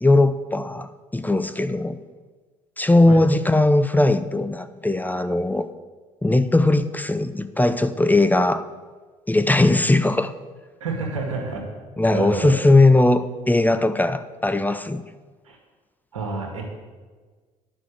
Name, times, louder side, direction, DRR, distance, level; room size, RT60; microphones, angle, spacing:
voice 1, 0.0-2.0 2.8-5.7 6.2-8.7 9.3-10.3 12.0-15.0, left 2 dB, 10° left, 11 dB, 0.7 m, -19 dB
voice 2, 10.8-11.6 12.1-12.5 15.5-15.6 16.1-16.6, right 3 dB, 90° right, 1 dB, 1.9 m, -28 dB
9.5 x 6.1 x 8.2 m, 1.4 s
hypercardioid pair, 55°, 17 cm